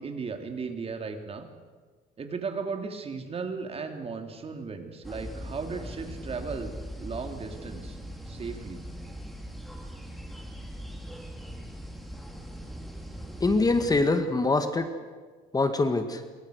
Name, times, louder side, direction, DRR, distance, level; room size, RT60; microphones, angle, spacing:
voice 1, 0.0-1.5 2.2-6.7 7.0-8.0 8.3-8.8, right 5 dB, 35° right, 5 dB, 3.0 m, -36 dB
sound 1, 5.0-14.0, equal, ahead, 4.4 m, -40 dB
voice 2, 13.4-14.9 15.5-16.2, left 3 dB, 20° left, 8 dB, 2.0 m, -24 dB
27.0 x 23.0 x 6.5 m, 1.5 s
cardioid pair, 110°, 17 cm